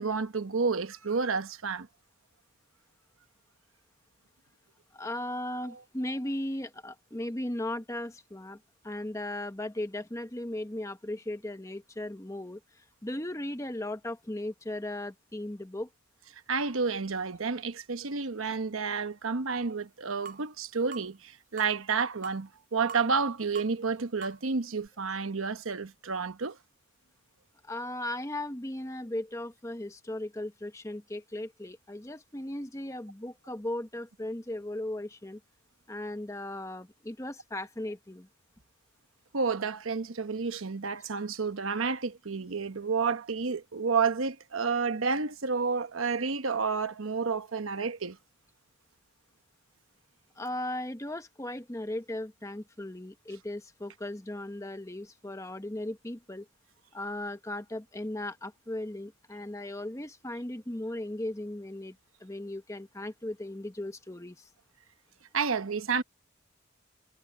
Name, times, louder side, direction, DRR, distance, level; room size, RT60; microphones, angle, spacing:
voice 1, 0.0-1.9 5.6-5.8 16.5-26.6 39.3-48.2 65.3-66.0, right 5 dB, 90° right, 1.1 m, -30 dB
voice 2, 4.9-15.9 27.6-35.4 35.9-38.3 50.4-56.5 56.9-64.5, left 1 dB, 15° left, 1.0 m, -37 dB
sound 1, 20.3-20.5 20.9-21.1 21.6-21.8 22.2-22.5 22.9-23.2 23.6-23.7 24.2-24.4 24.9-25.0, right 5 dB, 45° right, 5.2 m, -43 dB
head